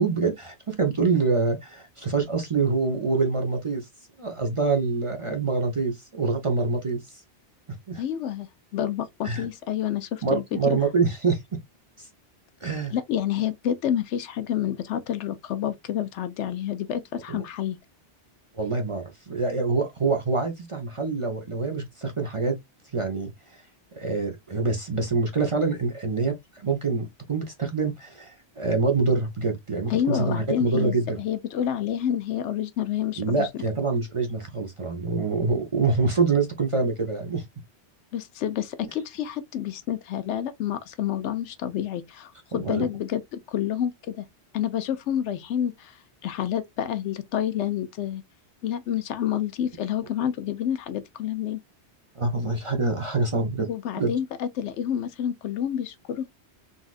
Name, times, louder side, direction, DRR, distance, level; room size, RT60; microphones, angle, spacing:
voice 1, 0.0-3.9 4.2-7.0 7.9-8.0 9.2-9.5 10.2-11.4 12.0-12.1 12.6-12.9 17.3-17.4 18.5-22.6 22.9-23.6 24.0-26.4 26.6-31.2 33.2-37.4 38.8-38.9 42.5-42.9 52.1-53.7 54.0-54.1, right 4 dB, 35° right, 0.6 m, -25 dB
voice 2, 8.0-10.8 12.9-17.8 29.9-33.5 38.1-44.2 44.5-45.7 46.2-48.2 48.6-51.6 53.7-56.3, left 10 dB, 80° left, 0.9 m, -28 dB
4.0 x 2.4 x 2.4 m
omnidirectional pair, 1.2 m